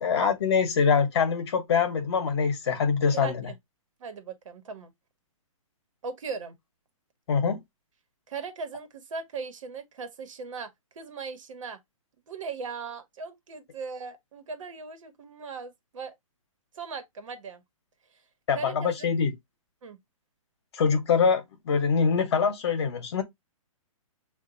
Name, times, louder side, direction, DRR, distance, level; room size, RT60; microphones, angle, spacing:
voice 1, 0.0-3.5 7.3-7.6 18.5-19.3 20.7-23.2, left 6 dB, 50° left, 1.0 m, -24 dB
voice 2, 3.0-3.5 4.0-4.9 6.0-6.5 8.3-11.8 12.3-16.2 16.7-17.6 18.5-18.9 19.8-20.0, right 5 dB, 65° right, 1.2 m, -38 dB
5.9 x 2.5 x 2.5 m
hypercardioid pair, 160°, 18 cm